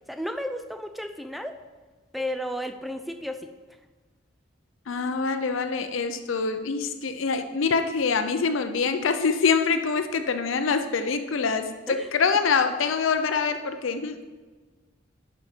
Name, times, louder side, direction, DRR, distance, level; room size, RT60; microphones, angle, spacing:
voice 1, 0.1-1.6 2.1-3.5 11.9-12.1, equal, ahead, 7 dB, 0.4 m, -33 dB
voice 2, 4.9-14.2, left 5 dB, 85° left, 8 dB, 0.5 m, -25 dB
10.5 x 5.2 x 4.4 m, 1.3 s
head